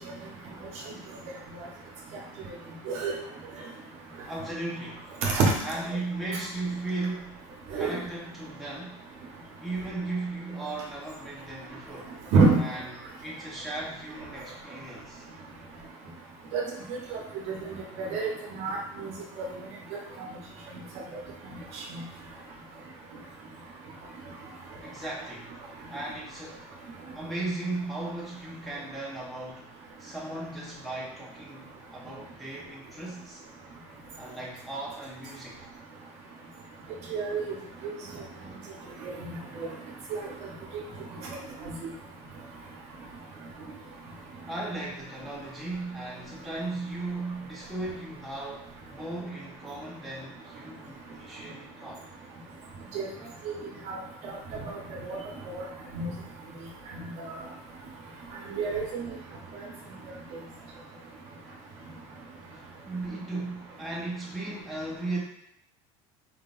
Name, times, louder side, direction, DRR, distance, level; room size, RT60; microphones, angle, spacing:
voice 1, 4.3-5.1 5.6-7.4 7.8-9.0 9.6-12.1 12.6-12.8 13.2-15.3 24.8-25.6 25.9-26.8 27.1-29.7 30.0-33.4 34.2-35.7 39.7-39.8 44.5-52.1 60.7-60.8 62.5-65.2, right 2 dB, ahead, -6 dB, 1.1 m, -36 dB
voice 2, 5.2-5.5 7.7-8.0 12.3-12.6 16.5-16.6 17.1-17.2 17.5-19.5 21.9-22.0 37.1-37.5 37.8-37.9 39.0-39.7 40.1-40.2 41.6-41.7 52.9-53.1 53.5-53.6 53.9-54.0 54.6-54.8 55.0-55.2 55.5-55.6 55.9-56.1 56.9-57.4 58.4-58.9, right 4 dB, 55° right, -1 dB, 1.1 m, -27 dB
4.8 x 3.8 x 2.6 m, 0.74 s
cardioid pair, 145°, 13 cm